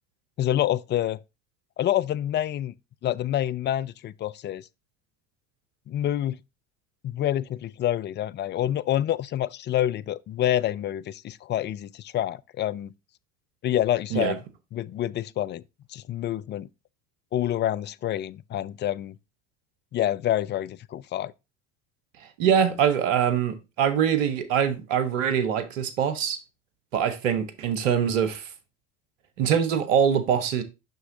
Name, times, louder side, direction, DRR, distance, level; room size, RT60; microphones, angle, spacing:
voice 1, 0.4-1.2 1.8-2.7 3.0-4.6 5.9-6.4 7.1-12.9 13.6-14.4 14.7-15.6 15.9-16.7 17.3-19.1 19.9-21.3, left 12 dB, 30° left, 0.3 m, -27 dB
voice 2, 22.2-26.4 26.9-28.5 29.4-30.6, right 8 dB, 75° right, 1.1 m, -23 dB
6.5 x 5.9 x 2.7 m
hypercardioid pair, 75°, 38 cm